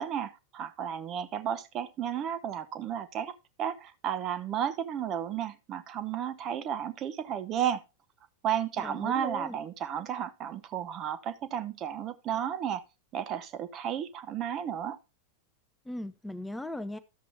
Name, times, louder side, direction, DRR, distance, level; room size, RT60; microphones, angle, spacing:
voice 1, 0.0-7.8 8.4-12.8 13.1-15.0, right 9 dB, 35° right, 0.9 m, -33 dB
voice 2, 8.8-9.6 15.9-17.0, left 1 dB, 5° left, 0.5 m, -38 dB
12.5 x 7.5 x 3.5 m
figure-of-eight pair, 90°, 0 cm